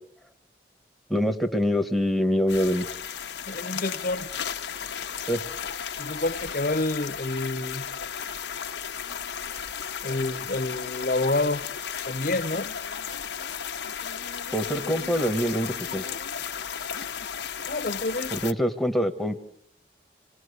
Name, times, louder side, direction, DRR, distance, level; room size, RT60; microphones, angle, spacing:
voice 1, 1.1-2.9 5.2-5.4 14.5-16.1 18.3-19.5, equal, ahead, 1.3 m, -25 dB
sound 1, 2.5-18.5, left 8 dB, 85° left, 0.9 m, -34 dB
voice 2, 3.5-4.3 6.0-7.9 10.0-11.6 12.0-12.7 17.7-18.3, left 2 dB, 50° left, 0.9 m, -28 dB
27.0 x 18.5 x 8.2 m
head